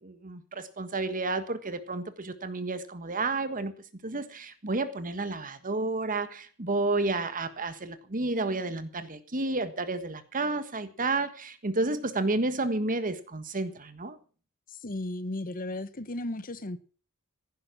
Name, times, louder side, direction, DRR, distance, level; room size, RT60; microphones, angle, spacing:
voice 1, 0.0-3.7 4.0-14.2, right 2 dB, 40° right, 1.5 m, -31 dB
voice 2, 14.7-16.8, left 1 dB, 40° left, 1.1 m, -35 dB
15.5 x 11.5 x 5.9 m
head